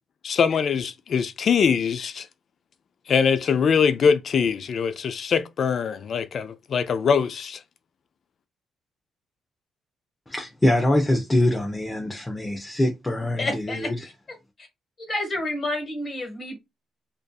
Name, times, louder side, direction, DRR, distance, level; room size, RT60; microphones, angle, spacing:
voice 1, 0.2-2.3 3.1-7.6, left 6 dB, 55° left, 0.3 m, -22 dB
voice 2, 10.3-14.0, left 1 dB, 15° left, 0.6 m, -23 dB
voice 3, 13.4-14.1 15.0-16.5, left 2 dB, 40° left, 1.3 m, -29 dB
2.5 x 2.4 x 2.2 m
cardioid pair, 90°, 0 cm